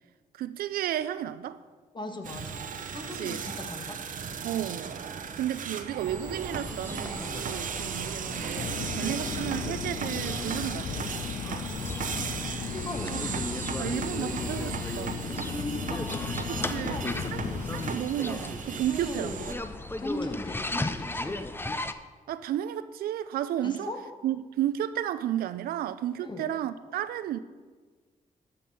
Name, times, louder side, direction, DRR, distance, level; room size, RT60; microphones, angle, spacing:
voice 1, 0.3-1.6 3.1-3.4 4.4-4.9 5.4-11.2 13.0-13.2 13.6-15.2 16.5-17.0 17.3-17.4 17.7-19.3 22.3-23.9 24.2-27.4, right 11 dB, 85° right, 14 dB, 0.5 m, -32 dB
voice 2, 1.9-4.0 11.5-11.9 12.7-13.3 15.3-17.6 18.9-19.6 20.0-21.5 23.6-24.0 26.2-26.5, left 1 dB, 30° left, 3 dB, 1.9 m, -39 dB
sound 1, 2.2-19.5, right 6 dB, 65° right, 0.9 m, -36 dB
sound 2, 6.1-21.9, left 2 dB, 15° left, 0.7 m, -37 dB
sound 3, 8.6-17.9, left 7 dB, 50° left, 0.6 m, -36 dB
13.0 x 6.1 x 5.4 m, 1.4 s
supercardioid pair, 55°, 15 cm